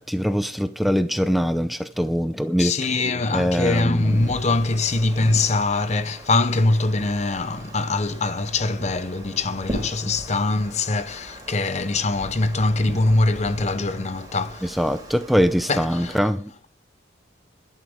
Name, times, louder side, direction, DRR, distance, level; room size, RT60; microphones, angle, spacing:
voice 1, 0.0-2.7 3.3-4.3 14.6-16.7, equal, ahead, 0.6 m, -23 dB
voice 2, 2.6-14.8 15.7-16.1, left 2 dB, 35° left, 0.8 m, -23 dB
Wind, 3.9-16.2, right 1 dB, 20° right, 4.2 m, -39 dB
12.0 x 11.0 x 4.9 m
head